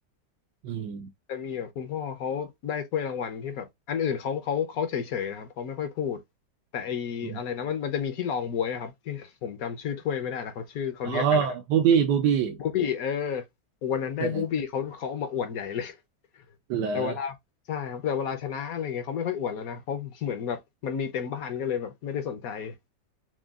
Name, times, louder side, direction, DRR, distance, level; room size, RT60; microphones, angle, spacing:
voice 1, 0.6-1.1 7.2-7.4 11.0-12.6 14.2-14.4 16.7-17.1, right 7 dB, 80° right, 1.3 m, -24 dB
voice 2, 1.3-6.2 6.7-11.5 12.6-13.4 13.8-16.0 16.3-16.4 16.9-17.3 17.7-22.8, left 8 dB, 65° left, 1.1 m, -31 dB
6.1 x 2.3 x 2.3 m
omnidirectional pair, 1.8 m